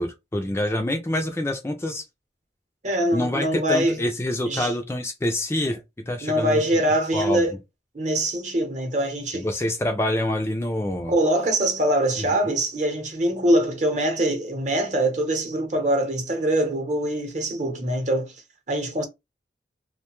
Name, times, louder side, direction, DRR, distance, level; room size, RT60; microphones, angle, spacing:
voice 1, 0.0-2.0 3.1-6.6 7.1-7.5 9.3-11.1, left 1 dB, 15° left, 0.4 m, -26 dB
voice 2, 2.8-4.0 4.4-4.7 6.2-7.5 7.9-9.5 11.1-18.3 18.7-19.0, right 1 dB, 45° right, 0.8 m, -23 dB
2.5 x 2.2 x 2.9 m
head